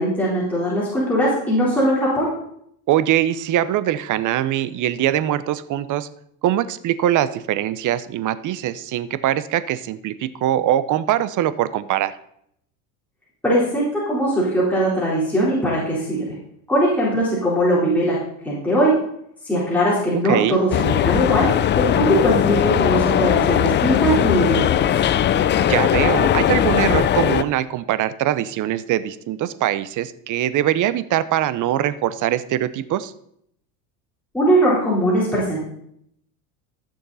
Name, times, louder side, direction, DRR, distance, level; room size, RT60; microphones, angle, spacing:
voice 1, 0.0-2.3 13.4-16.3 16.7-18.2 18.4-19.0 19.4-21.5 21.8-24.9 34.3-35.6, equal, 5° left, -8 dB, 3.9 m, -20 dB
voice 2, 2.9-6.1 6.4-12.1 20.2-20.6 25.6-33.1, right 12 dB, 40° right, 14 dB, 0.8 m, -22 dB
sound 1, 20.7-27.4, left 10 dB, 25° left, 0.4 m, -19 dB
14.0 x 6.6 x 4.1 m, 0.72 s
supercardioid pair, 100°, 45 cm